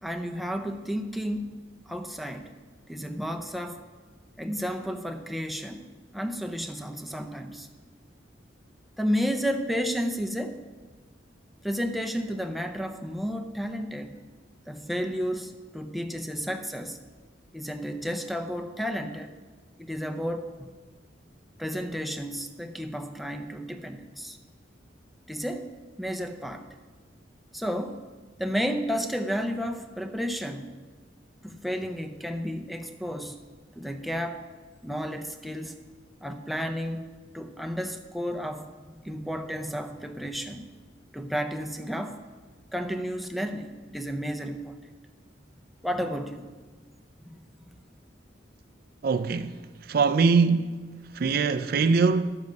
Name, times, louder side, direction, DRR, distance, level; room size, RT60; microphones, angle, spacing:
voice 1, 0.0-1.6 1.9-2.5 2.9-3.8 4.4-5.8 6.1-7.7 9.0-10.6 11.6-14.1 14.7-17.0 17.5-19.3 19.8-20.7 21.6-24.4 25.3-25.7 26.0-26.6 27.5-28.0 28.4-30.7 31.4-33.4 33.8-34.4 34.8-35.8 36.2-37.1 37.3-40.7 41.1-42.2 42.7-44.8 45.8-46.5 47.2-47.3, equal, ahead, 0.5 m, -32 dB
voice 2, 49.0-49.5 49.9-50.7 51.1-52.4, right 4 dB, 50° right, 0.4 m, -22 dB
12.0 x 7.4 x 5.3 m
head